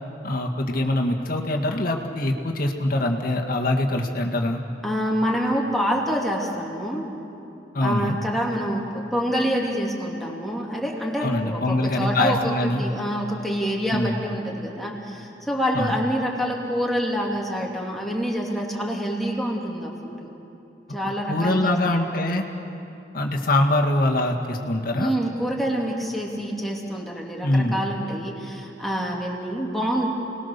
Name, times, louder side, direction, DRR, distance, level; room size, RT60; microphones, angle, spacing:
voice 1, 0.2-4.6 7.7-8.2 11.2-12.8 13.9-14.2 15.7-16.0 21.3-22.4 23.1-25.1 27.4-27.8, left 1 dB, 55° left, 1 dB, 1.9 m, -23 dB
voice 2, 4.8-7.1 7.8-12.5 12.8-19.9 20.2-20.3 20.9-22.1 25.0-30.1, equal, ahead, -2 dB, 3.0 m, -26 dB
29.5 x 20.0 x 6.8 m, 2.8 s
head